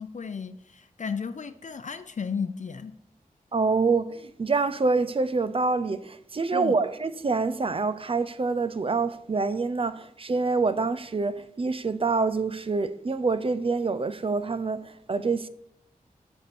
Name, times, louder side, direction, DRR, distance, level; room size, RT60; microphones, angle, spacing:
voice 1, 0.0-3.0 6.5-6.8, left 6 dB, 55° left, 0.5 m, -34 dB
voice 2, 3.5-15.5, right 4 dB, 40° right, 0.5 m, -26 dB
8.1 x 4.3 x 6.9 m
wide cardioid pair, 75°, 15 cm